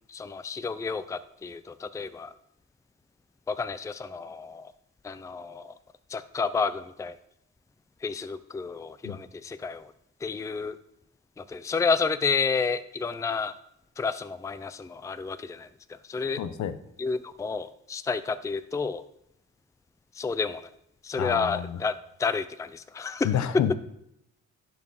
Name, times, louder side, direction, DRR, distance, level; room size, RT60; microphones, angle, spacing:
voice 1, 0.1-2.3 3.5-4.7 5.0-5.7 6.1-7.2 8.0-9.9 10.2-10.8 11.4-13.5 14.0-16.4 17.0-19.0 20.1-20.7 21.0-21.9 22.2-23.4, left 5 dB, 10° left, 14 dB, 0.4 m, -30 dB
voice 2, 16.4-16.8 21.2-21.8 23.2-23.8, left 9 dB, 70° left, 13 dB, 0.8 m, -29 dB
10.5 x 4.8 x 4.8 m, 0.78 s
cardioid pair, 90°, 30 cm